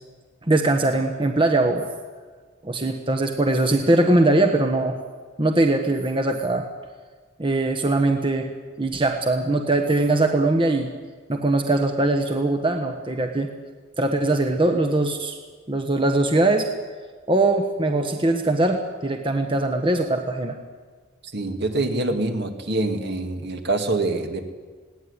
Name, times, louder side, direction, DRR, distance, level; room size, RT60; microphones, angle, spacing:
voice 1, 0.5-1.8 2.6-5.0 5.4-6.7 7.4-8.5 8.8-10.9 11.3-13.5 14.0-15.4 15.7-16.7 17.3-20.6, right 2 dB, 25° right, 5 dB, 1.3 m, -21 dB
voice 2, 21.3-24.4, right 2 dB, 60° right, 5 dB, 2.4 m, -25 dB
20.5 x 17.0 x 9.9 m, 1.5 s
head